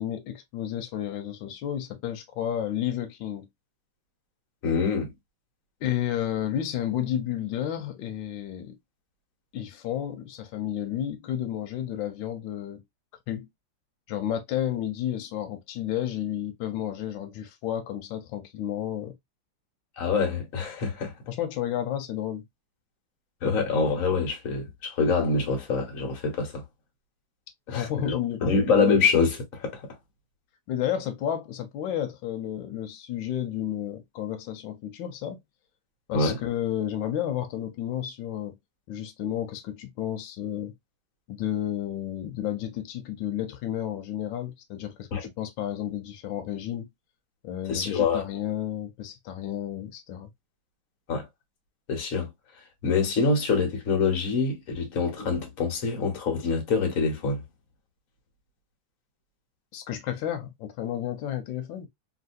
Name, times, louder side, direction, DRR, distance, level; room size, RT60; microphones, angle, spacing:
voice 1, 0.0-3.5 5.8-8.8 9.5-12.8 13.3-13.5 14.1-19.2 21.3-22.4 27.7-28.6 30.7-35.4 36.1-38.6 38.9-40.7 41.3-46.9 47.4-50.3 59.7-61.9, left 11 dB, 85° left, 1.4 m, -31 dB
voice 2, 4.6-5.1 20.0-21.1 23.4-26.6 27.7-29.8 36.1-36.4 45.1-45.2 47.7-48.2 51.1-51.3 51.9-52.3 52.8-57.4, left 4 dB, 50° left, 1.4 m, -25 dB
3.3 x 2.7 x 2.6 m
omnidirectional pair, 2.0 m